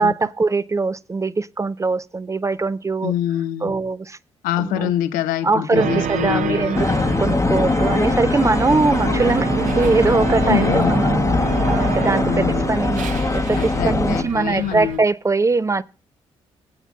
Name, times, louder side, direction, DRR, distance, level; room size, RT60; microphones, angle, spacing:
voice 1, 0.0-3.1 3.6-4.2 4.6-4.9 5.4-6.9 7.2-11.2 11.7-15.8, right 3 dB, 20° right, 0.4 m, -21 dB
voice 2, 3.0-3.7 4.4-6.8 10.5-11.0 12.1-12.7 13.5-15.0, left 11 dB, 75° left, 0.6 m, -25 dB
sound 1, 5.7-15.0, right 7 dB, 65° right, 0.8 m, -28 dB
sound 2, 6.7-14.2, left 3 dB, 20° left, 0.8 m, -21 dB
19.5 x 8.0 x 2.3 m
hypercardioid pair, 45°, 14 cm